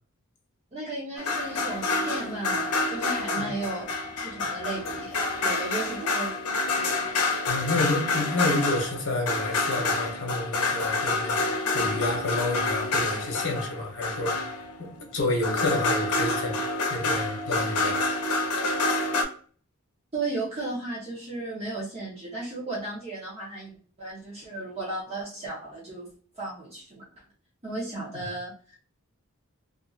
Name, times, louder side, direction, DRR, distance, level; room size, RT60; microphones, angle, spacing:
voice 1, 0.7-3.9 4.2-7.1 20.1-23.7 24.0-26.1 26.3-27.0 27.6-28.8, right 2 dB, 30° right, 0.8 m, -35 dB
sound 1, 1.2-15.0 15.4-19.2, left 3 dB, 90° left, 0.6 m, -28 dB
voice 2, 7.5-14.4 14.8-16.6 16.9-18.0 28.1-28.3, left 2 dB, 55° left, 0.8 m, -29 dB
2.6 x 2.5 x 2.4 m
head